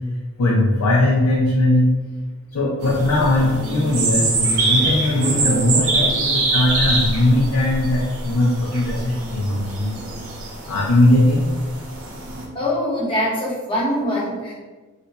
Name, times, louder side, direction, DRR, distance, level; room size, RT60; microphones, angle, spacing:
voice 1, 0.4-1.9 2.5-10.0 10.7-11.5, left 1 dB, 85° left, -5 dB, 0.5 m, -19 dB
sound 1, 2.8-12.5, right 2 dB, 65° right, 0.7 m, -24 dB
voice 2, 12.5-14.5, left 1 dB, 25° left, -6 dB, 0.8 m, -23 dB
2.5 x 2.2 x 4.0 m, 1.3 s
head